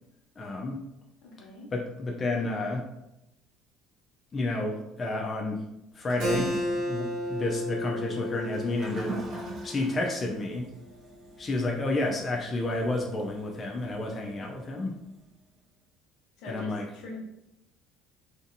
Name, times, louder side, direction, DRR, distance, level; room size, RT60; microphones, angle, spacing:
voice 1, 0.4-0.8 1.7-2.9 4.3-5.6 6.0-6.5 6.9-9.2 9.6-10.7 11.4-14.9 16.5-16.8, left 2 dB, 25° left, -1 dB, 0.3 m, -30 dB
voice 2, 1.2-1.7 16.4-17.2, left 2 dB, 75° left, -1 dB, 0.8 m, -42 dB
Toilet flush, 5.9-15.2, right 4 dB, 45° right, 0.6 m, -44 dB
Keyboard (musical), 6.2-11.4, equal, 65° right, 1.2 m, -34 dB
2.6 x 2.5 x 2.6 m, 0.89 s
cardioid pair, 140°, 0 cm